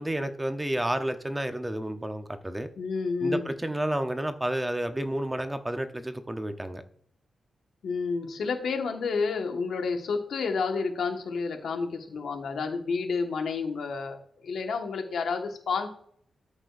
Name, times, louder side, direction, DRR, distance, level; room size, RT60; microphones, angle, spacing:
voice 1, 0.0-2.7 3.2-6.8, right 1 dB, 10° right, 8 dB, 0.7 m, -31 dB
voice 2, 2.8-3.5 7.8-15.9, left 4 dB, 80° left, 4 dB, 1.4 m, -30 dB
13.5 x 6.3 x 2.5 m, 0.62 s
wide cardioid pair, 120°, 0 cm